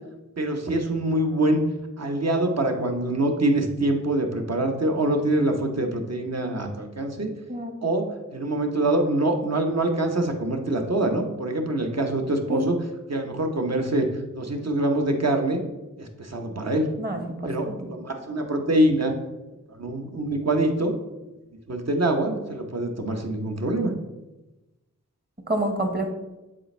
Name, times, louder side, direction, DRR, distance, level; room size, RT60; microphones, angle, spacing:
voice 1, 0.4-1.6 2.0-7.3 7.8-12.8 13.1-14.1 14.3-15.6 16.0-16.9 17.4-19.1 19.7-20.9 21.7-23.9, right 1 dB, 50° right, 4 dB, 1.0 m, -24 dB
voice 2, 17.0-17.9 25.5-26.1, right 1 dB, 30° right, 3 dB, 1.3 m, -27 dB
7.6 x 4.2 x 3.3 m, 1.0 s
wide cardioid pair, 50°, 33 cm